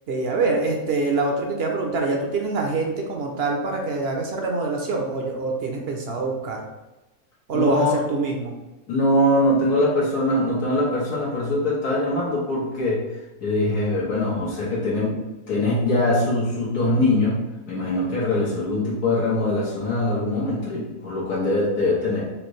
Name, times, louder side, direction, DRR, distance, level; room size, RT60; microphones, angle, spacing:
voice 1, 0.1-6.6 7.5-8.5, right 3 dB, 60° right, 1 dB, 0.6 m, -25 dB
voice 2, 7.5-7.9 8.9-13.0 13.4-15.2 15.5-22.2, left 1 dB, 90° left, -8 dB, 1.8 m, -22 dB
5.1 x 2.6 x 3.1 m, 1.1 s
omnidirectional pair, 1.6 m